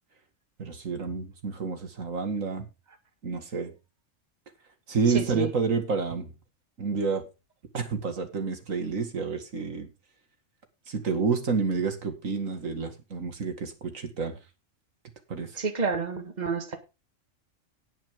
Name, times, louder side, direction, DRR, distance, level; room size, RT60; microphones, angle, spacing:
voice 1, 0.6-2.7 3.2-3.7 4.9-6.3 6.8-7.2 7.7-9.9 10.9-14.4 15.3-15.5, right 5 dB, 85° right, 7 dB, 2.3 m, -29 dB
voice 2, 5.1-5.5 15.6-16.8, right 4 dB, 35° right, 6 dB, 1.8 m, -29 dB
18.5 x 6.2 x 3.7 m, 0.28 s
omnidirectional pair, 1.3 m